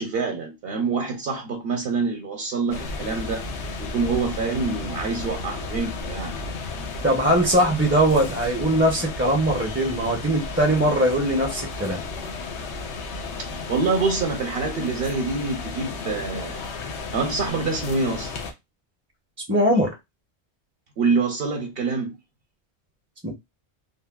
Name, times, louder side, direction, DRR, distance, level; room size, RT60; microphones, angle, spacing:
voice 1, 0.0-3.5 3.8-6.4 13.5-16.6 17.1-18.3 21.0-22.2, right 4 dB, 65° right, 0.8 m, -26 dB
sound 1, 2.7-18.5, left 3 dB, 85° left, 0.9 m, -33 dB
voice 2, 7.0-12.0 19.5-19.9 23.2-23.3, right 1 dB, 15° right, 0.4 m, -21 dB
3.3 x 2.2 x 2.2 m
omnidirectional pair, 1.1 m